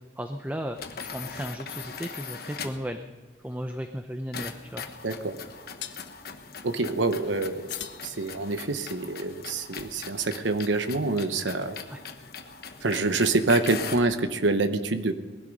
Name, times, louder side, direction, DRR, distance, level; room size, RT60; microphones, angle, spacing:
voice 1, 0.2-3.0 3.4-4.9 11.9-12.0, equal, 10° right, 7 dB, 0.6 m, -35 dB
sound 1, 0.7-2.9 4.3-14.1, left 6 dB, 55° left, 1.2 m, -40 dB
sound 2, 3.8-4.0 5.8-6.2 7.7-8.8, left 11 dB, 75° left, 1.0 m, -41 dB
voice 2, 5.0-5.3 6.6-11.8 12.8-15.1, right 3 dB, 85° right, 9 dB, 1.0 m, -26 dB
19.5 x 12.0 x 5.4 m, 1.4 s
head